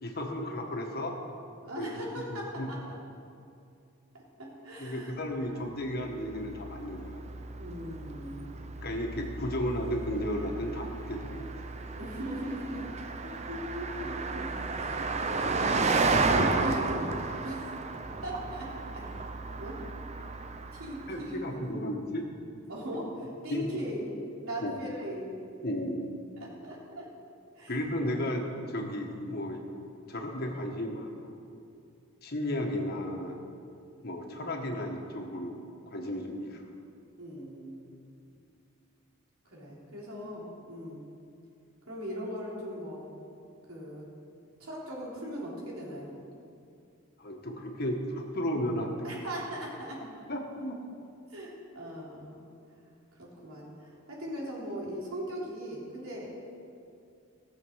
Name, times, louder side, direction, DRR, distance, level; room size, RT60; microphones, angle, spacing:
voice 1, 0.0-1.2 1.8-2.7 4.8-7.2 8.8-11.6 21.1-22.2 23.5-23.6 24.6-24.7 25.6-26.2 27.7-29.6 30.1-31.4 32.2-33.4 34.0-36.6 47.2-49.3 50.3-50.8, equal, 45° left, 1 dB, 1.5 m, -34 dB
voice 2, 1.6-2.8 4.1-5.1 5.5-5.7 7.5-8.6 12.0-13.0 13.2-17.7 18.2-19.0 19.6-19.8 20.2-20.3 20.7-21.7 22.7-24.1 24.4-25.3 26.4-27.1 27.6-27.8 28.1-28.2 37.2-37.9 39.5-41.0 41.9-43.1 43.7-44.1 44.6-46.2 49.0-50.3 51.3-52.4 53.1-56.3, equal, 85° right, -5 dB, 3.6 m, -39 dB
Car passing by, 5.8-21.6, right 3 dB, 30° right, 0.6 m, -33 dB
17.5 x 7.1 x 6.4 m, 2.5 s
head